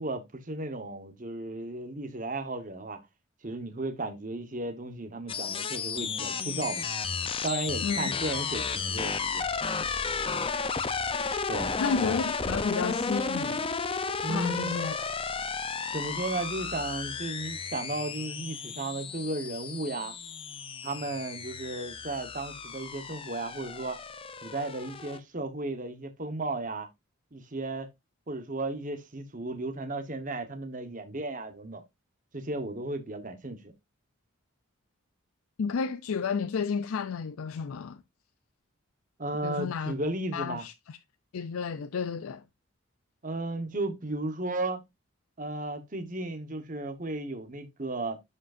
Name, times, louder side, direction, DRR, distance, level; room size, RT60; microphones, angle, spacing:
voice 1, 0.0-3.0 3.4-6.9 7.4-9.4 11.5-11.7 14.2-14.8 15.9-20.1 20.8-24.0 24.4-26.9 27.3-27.9 28.3-31.8 32.3-33.7 39.2-40.6 43.2-44.8 45.4-48.2, right 2 dB, 35° right, 1.1 m, -34 dB
sound 1, 5.3-25.2, left 5 dB, 25° left, 0.5 m, -33 dB
voice 2, 11.8-13.7 14.3-15.1 35.6-38.0 39.4-39.9 40.3-41.0 41.3-42.4, left 5 dB, 75° left, 0.4 m, -32 dB
11.0 x 5.1 x 2.5 m
head